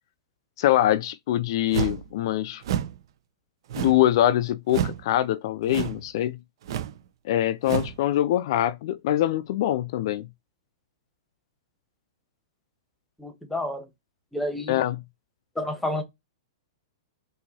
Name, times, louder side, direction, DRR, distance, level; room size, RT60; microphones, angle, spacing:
voice 1, 0.6-2.6 3.8-6.4 7.2-10.3 14.7-15.0, left 13 dB, 60° left, 0.4 m, -24 dB
sound 1, 1.7-2.1 2.6-3.0 3.7-4.1 4.7-5.0 5.7-6.1 6.6-7.0 7.6-8.0, right 10 dB, 65° right, 0.6 m, -29 dB
voice 2, 13.2-13.9 14.3-14.8 15.5-16.0, left 1 dB, 5° left, 1.1 m, -30 dB
4.4 x 2.6 x 2.7 m
hypercardioid pair, 125°, 3 cm